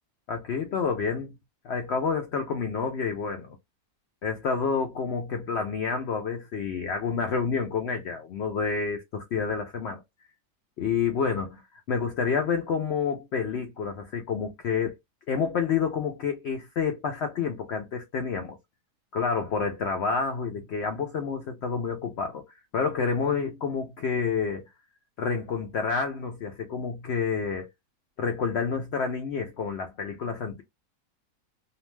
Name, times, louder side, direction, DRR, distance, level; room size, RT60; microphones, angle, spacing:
voice 1, 0.3-1.3 1.6-3.6 4.2-10.0 10.8-11.6 11.9-14.9 15.3-18.6 19.1-22.4 22.7-24.6 25.2-27.7 28.2-30.6, left 5 dB, 80° left, 0.5 m, -29 dB
2.8 x 2.1 x 3.0 m
omnidirectional pair, 1.7 m